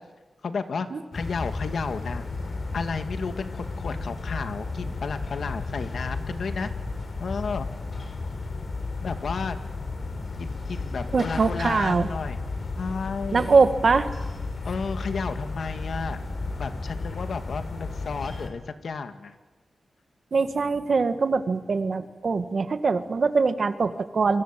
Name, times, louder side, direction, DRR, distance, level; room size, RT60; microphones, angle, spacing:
voice 1, 0.4-0.9 1.1-2.2 2.7-6.7 7.2-7.7 9.0-9.6 10.4-12.4 12.8-13.5 14.6-16.2 16.6-19.4, left 5 dB, 75° left, 8 dB, 2.0 m, -32 dB
sound 1, 1.1-18.5, left 3 dB, 50° left, 4.4 m, -33 dB
voice 2, 11.1-12.1 13.3-14.1 20.3-24.4, right 4 dB, 55° right, 9 dB, 1.8 m, -22 dB
27.0 x 25.0 x 7.6 m, 1.2 s
wide cardioid pair, 110°, 0 cm